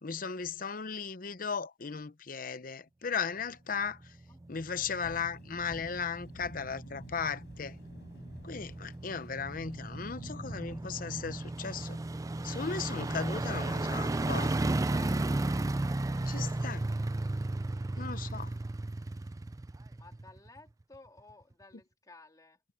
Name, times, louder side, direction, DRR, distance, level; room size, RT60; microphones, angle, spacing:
voice 1, 0.0-4.0 4.5-7.8 8.4-12.0 12.4-14.5 16.3-16.8 18.0-18.5, left 6 dB, 50° left, 0.8 m, -36 dB
sound 1, 4.0-20.6 20.9-21.0, right 2 dB, 20° right, 0.4 m, -35 dB
sound 2, 5.0-15.1, equal, 75° left, 7.1 m, -52 dB
voice 2, 13.0-15.3 20.0-22.6, left 3 dB, 20° left, 2.8 m, -55 dB
head